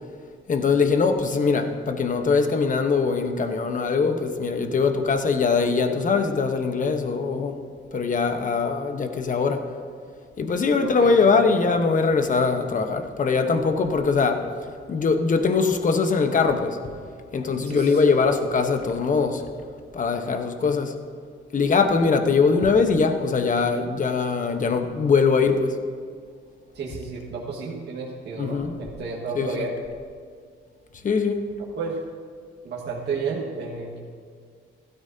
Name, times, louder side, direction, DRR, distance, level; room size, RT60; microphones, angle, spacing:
voice 1, 0.5-7.6 7.9-9.7 10.4-14.5 14.9-16.8 17.3-19.4 19.9-21.0 21.5-25.8 28.4-28.8 29.3-29.7 31.0-31.5, left 4 dB, 40° left, 6 dB, 1.1 m, -22 dB
voice 2, 10.8-11.6 17.7-18.1 26.7-29.7 31.8-32.0 32.6-34.0, right 4 dB, 60° right, -4 dB, 1.7 m, -31 dB
16.0 x 12.5 x 2.8 m, 2.1 s
cardioid pair, 90°, 20 cm